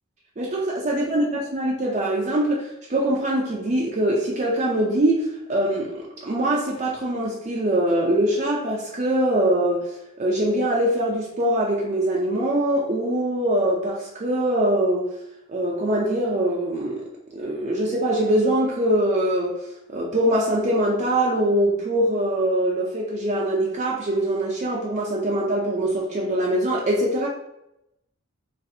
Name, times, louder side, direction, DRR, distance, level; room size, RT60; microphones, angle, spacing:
voice 1, 0.4-9.9 10.2-15.1 15.5-17.0 17.3-19.5 19.9-27.3, right 1 dB, 35° right, -2 dB, 0.5 m, -23 dB
4.1 x 3.2 x 2.6 m, 0.86 s
head